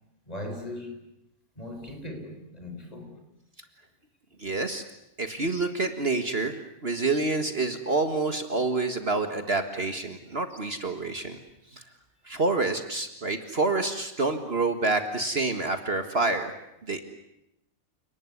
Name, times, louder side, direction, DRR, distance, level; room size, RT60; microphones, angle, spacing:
voice 1, 0.3-1.1 1.5-3.2, left 1 dB, 25° left, 5 dB, 4.8 m, -39 dB
voice 2, 4.4-4.8 5.2-6.5 6.8-11.4 11.7-11.8 12.3-16.5 16.9-17.0, right 3 dB, 45° right, 7 dB, 1.9 m, -27 dB
29.5 x 19.5 x 9.7 m, 0.85 s
omnidirectional pair, 1.5 m